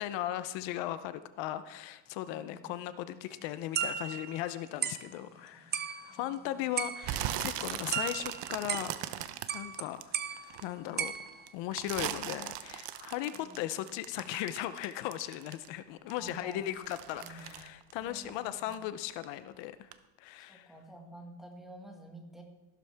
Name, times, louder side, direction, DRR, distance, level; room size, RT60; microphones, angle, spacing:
voice 1, 0.0-19.9 20.2-20.7, left 13 dB, 80° left, 13 dB, 0.7 m, -38 dB
voice 2, 2.3-2.7 5.1-5.7 6.1-6.8 13.3-13.6 16.2-16.8 17.1-17.5 18.0-18.8 20.5-22.4, right 1 dB, ahead, 1 dB, 1.8 m, -51 dB
sound 1, 3.7-4.5 4.8-5.1 5.7-6.4 6.8-7.4 7.6-9.1 9.5-9.8 10.1-11.5, right 8 dB, 25° right, 0.5 m, -36 dB
sound 2, 7.0-10.6 11.0-15.8 16.1-18.8 19.1-19.5 19.9-20.0, right 12 dB, 70° right, 0.9 m, -39 dB
14.5 x 12.0 x 3.5 m, 1.1 s
cardioid pair, 155°, 43 cm